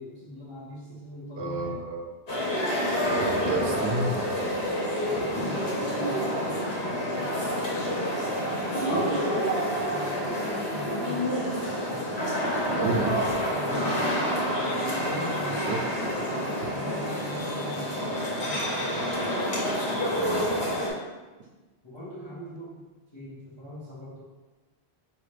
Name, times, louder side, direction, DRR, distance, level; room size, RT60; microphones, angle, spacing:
voice 1, 0.0-1.9 3.3-3.8 5.0-7.2 8.7-9.2 9.7-14.1 14.5-15.7 16.2-19.0 19.8-20.7 21.8-22.9 23.1-24.2, equal, 30° left, -9 dB, 0.8 m, -42 dB
voice 2, 1.4-2.1 3.0-4.5 12.7-13.2 15.5-15.8 20.1-20.5, right 3 dB, 85° right, 1 dB, 0.9 m, -31 dB
sound 1, 2.3-20.9, equal, 90° left, 1.3 m, -28 dB
4.8 x 2.9 x 3.1 m, 1.2 s
omnidirectional pair, 1.0 m